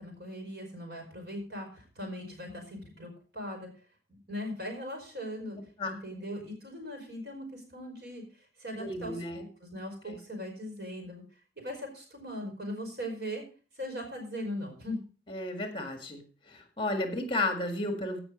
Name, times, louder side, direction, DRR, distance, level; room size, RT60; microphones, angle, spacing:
voice 1, 0.0-3.7 4.1-5.6 5.8-8.2 8.6-11.2 11.6-13.4 13.8-15.0, equal, 70° right, 3 dB, 5.0 m, -39 dB
voice 2, 8.7-9.4 10.1-10.2 15.3-18.2, left 2 dB, 30° left, 6 dB, 1.9 m, -33 dB
16.0 x 6.0 x 5.2 m, 0.38 s
head